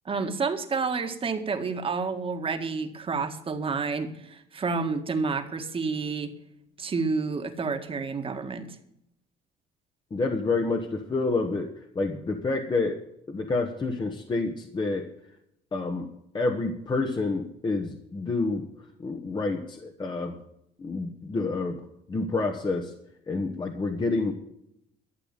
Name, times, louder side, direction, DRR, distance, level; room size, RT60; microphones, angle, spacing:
voice 1, 0.1-6.3 6.8-8.8, right 4 dB, 35° right, 7 dB, 1.8 m, -29 dB
voice 2, 10.1-11.7 11.9-13.0 13.3-15.1 15.7-16.1 16.3-18.7 19.0-20.4 20.8-21.8 22.1-22.9 23.3-24.3, left 3 dB, 25° left, 4 dB, 1.4 m, -28 dB
13.0 x 7.2 x 9.0 m, 0.75 s
cardioid pair, 110°, 17 cm